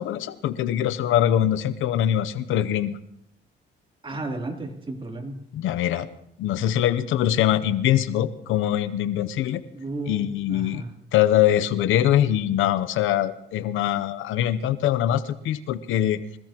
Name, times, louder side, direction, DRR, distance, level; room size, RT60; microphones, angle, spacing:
voice 1, 0.0-3.0 5.5-6.1 6.4-9.6 10.1-10.8 11.1-16.2, left 11 dB, 85° left, 14 dB, 0.8 m, -23 dB
voice 2, 4.0-5.3 9.7-10.9, right 2 dB, 25° right, 0 dB, 3.4 m, -33 dB
24.5 x 16.0 x 3.0 m, 0.75 s
cardioid pair, 90°, 20 cm